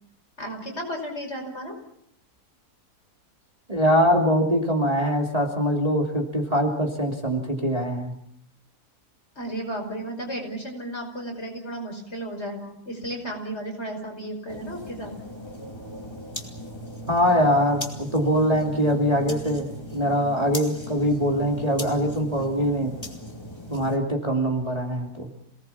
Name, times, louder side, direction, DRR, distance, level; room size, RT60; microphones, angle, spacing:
voice 1, 0.4-1.8 9.4-15.1, right 1 dB, 40° left, 1 dB, 5.9 m, -34 dB
voice 2, 3.7-8.1 17.1-23.0 23.7-25.3, equal, 20° right, 0 dB, 3.0 m, -23 dB
sound 1, 14.5-24.0, equal, 15° left, 2.6 m, -38 dB
27.5 x 19.0 x 7.2 m, 0.72 s
omnidirectional pair, 1.7 m